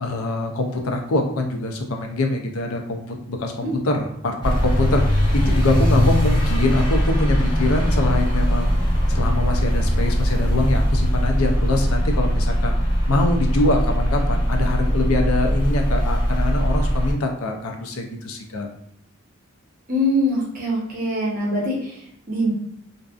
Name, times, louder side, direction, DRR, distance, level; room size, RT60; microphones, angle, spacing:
voice 1, 0.0-8.7 9.1-12.8 13.1-18.7, left 2 dB, 90° left, 3 dB, 0.5 m, -24 dB
sound 1, 4.4-17.1, equal, 20° left, 0.8 m, -20 dB
voice 2, 19.9-22.5, equal, 40° right, -4 dB, 0.8 m, -23 dB
2.6 x 2.3 x 2.3 m, 0.71 s
head